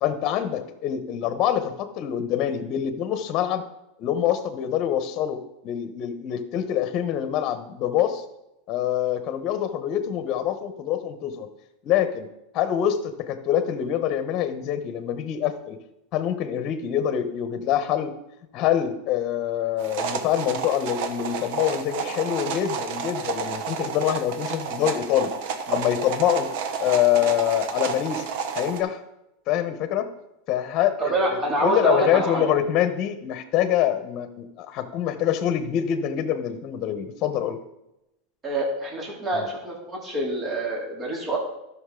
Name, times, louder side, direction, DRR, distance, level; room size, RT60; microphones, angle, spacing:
voice 1, 0.0-3.6 4.0-5.4 5.6-8.2 8.7-11.5 11.8-12.3 12.5-15.8 16.1-18.1 18.5-25.3 25.7-26.5 26.8-28.2 28.5-29.0 29.5-30.1 30.5-37.6 39.3-39.4, left 10 dB, 45° left, 10 dB, 1.1 m, -25 dB
sound 1, 19.8-28.8, right 6 dB, 65° right, 1.1 m, -31 dB
voice 2, 31.0-32.5 38.4-41.4, right 2 dB, 25° right, -2 dB, 2.9 m, -26 dB
12.5 x 6.3 x 3.8 m, 0.88 s
supercardioid pair, 120°, 0 cm